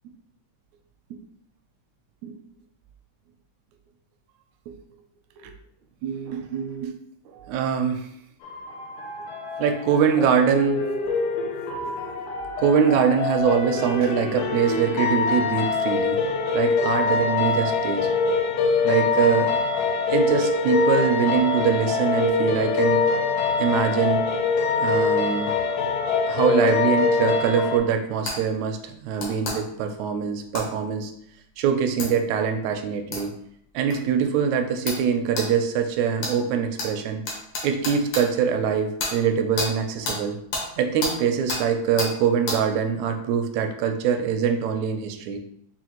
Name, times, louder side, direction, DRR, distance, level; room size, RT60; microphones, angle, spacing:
voice 1, 6.0-6.9 7.3-8.1 9.6-10.8 11.9-12.0 12.6-16.2 16.5-18.2 18.8-19.6 20.1-23.0 23.6-24.2 24.8-25.5 26.3-31.1 31.6-33.4 33.7-37.3 37.6-40.4 40.8-45.4, right 7 dB, 80° right, 6 dB, 1.7 m, -23 dB
sound 1, 8.4-27.8, left 4 dB, 80° left, 2.1 m, -24 dB
sound 2, 28.3-28.4 29.2-29.6 30.5-30.7 32.0-32.1 33.1-33.2 33.9-34.0 34.9-35.0 35.4-35.5 36.2-36.3 36.8-36.9 37.3-38.2 39.0-39.1 39.6-39.7 40.0-40.2 40.5-40.7 41.0-41.1 41.5-41.6 42.0-42.1 42.5-42.6, left 2 dB, 60° left, 1.4 m, -28 dB
5.7 x 2.4 x 2.9 m, 0.70 s
omnidirectional pair, 3.5 m